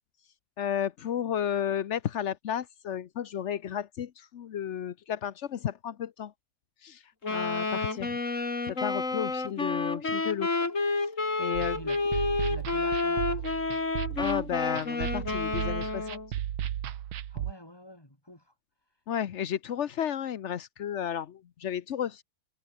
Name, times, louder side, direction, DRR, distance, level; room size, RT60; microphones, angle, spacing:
voice 1, 0.6-6.3 6.8-7.0 7.3-8.2 8.7-10.5 11.4-11.8 14.2-16.2 19.1-22.2, left 9 dB, 65° left, 0.7 m, -33 dB
Wind instrument woodwind instrument, 7.2-16.3, left 3 dB, 35° left, 3.6 m, -30 dB
sound 1, 11.5-17.5, right 11 dB, 75° right, 1.9 m, -35 dB
voice 2, 11.7-12.2 12.4-13.4 17.3-18.4, left 1 dB, 10° left, 4.6 m, -47 dB
omnidirectional pair, 2.2 m